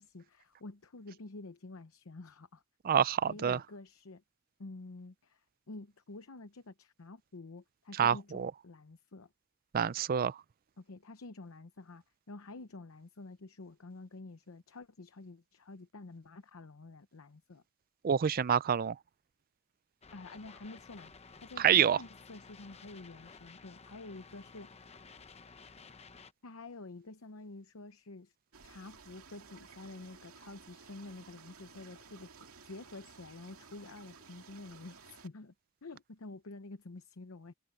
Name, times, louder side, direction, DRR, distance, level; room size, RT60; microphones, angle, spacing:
voice 1, 0.0-2.6 3.3-4.2 4.6-9.3 10.8-17.6 20.1-21.1 21.4-24.7 26.4-28.3 28.6-32.3 32.6-35.5 35.8-37.5, left 2 dB, 70° left, 0.8 m, -49 dB
voice 2, 2.8-3.6 8.0-8.5 9.7-10.4 18.0-19.0 21.6-22.0, right 8 dB, 40° right, 0.4 m, -27 dB
sound 1, 20.0-26.3, left 4 dB, 30° left, 0.9 m, -54 dB
sound 2, 28.5-35.3, right 5 dB, 75° right, 2.4 m, -55 dB
head